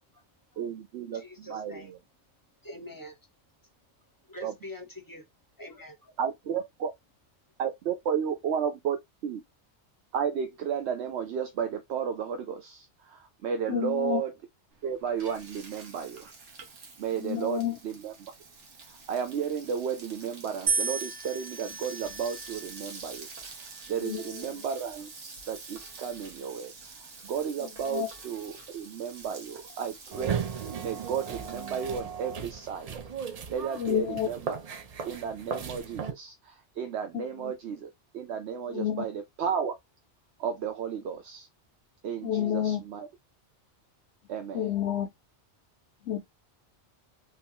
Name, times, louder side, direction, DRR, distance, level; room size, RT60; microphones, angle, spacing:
voice 1, 0.6-1.8 4.4-4.5 6.2-6.9 7.6-9.4 10.1-14.3 14.8-16.3 17.0-18.3 19.1-32.9 33.3-34.6 35.0-39.7 40.4-41.5 42.0-43.1 44.3-44.7, right 7 dB, 70° right, 0.9 m, -33 dB
voice 2, 1.1-1.9 2.6-3.2 4.3-5.3 5.6-6.1, left 1 dB, 20° left, 0.7 m, -44 dB
voice 3, 13.7-14.2 17.2-17.8 24.0-24.6 27.9-28.1 33.8-34.3 37.1-37.5 38.7-39.1 42.2-42.8 44.5-45.1 46.0-46.2, left 10 dB, 80° left, 0.9 m, -30 dB
Frying (food), 14.7-32.0, right 4 dB, 90° right, 1.4 m, -47 dB
sound 1, 20.7-22.9 23.7-24.2, right 4 dB, 30° right, 1.0 m, -33 dB
sound 2, 30.1-36.1, right 7 dB, 55° right, 0.4 m, -36 dB
3.8 x 2.6 x 2.8 m
omnidirectional pair, 1.2 m